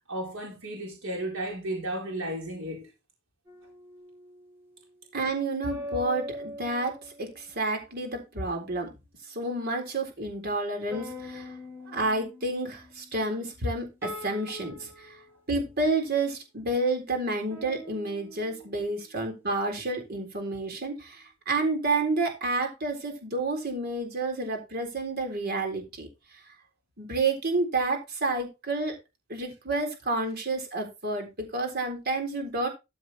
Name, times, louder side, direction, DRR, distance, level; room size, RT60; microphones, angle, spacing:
voice 1, 0.1-2.9, right 1 dB, 80° right, 4.3 m, -34 dB
sound 1, 3.5-4.7 5.7-7.7 10.9-15.4 17.5-19.3, left 1 dB, 10° right, 4.1 m, -43 dB
voice 2, 5.1-8.9 9.3-11.5 11.9-15.2 15.5-26.4 27.0-29.0 29.3-32.7, right 2 dB, 50° right, 3.8 m, -30 dB
14.0 x 5.3 x 4.2 m
head